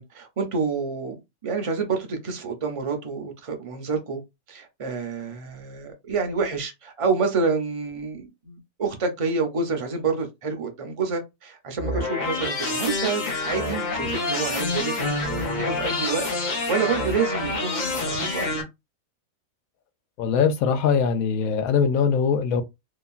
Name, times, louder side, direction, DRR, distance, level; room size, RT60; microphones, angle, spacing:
voice 1, 0.0-4.2 4.5-18.6, right 4 dB, 50° right, 0.3 m, -28 dB
sound 1, 11.8-18.6, left 2 dB, 45° left, 0.6 m, -27 dB
voice 2, 20.2-22.6, left 6 dB, 90° left, 1.0 m, -21 dB
2.9 x 2.3 x 2.3 m
omnidirectional pair, 1.4 m